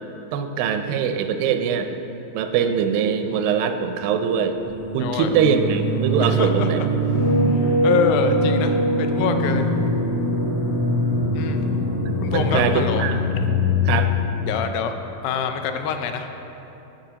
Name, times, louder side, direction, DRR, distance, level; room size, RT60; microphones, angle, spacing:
voice 1, 0.3-1.9 2.3-4.6 4.9-6.8 12.3-13.2 13.9-14.1, right 7 dB, 90° right, 7 dB, 2.3 m, -22 dB
sound 1, 4.6-14.5, equal, 55° left, 1.9 m, -22 dB
voice 2, 5.0-5.3 6.2-6.9 7.5-9.7 11.3-11.6 12.2-13.0 14.5-14.9 15.2-16.3, left 7 dB, 85° left, 6 dB, 2.3 m, -25 dB
15.0 x 5.5 x 2.9 m, 3.0 s
omnidirectional pair, 4.0 m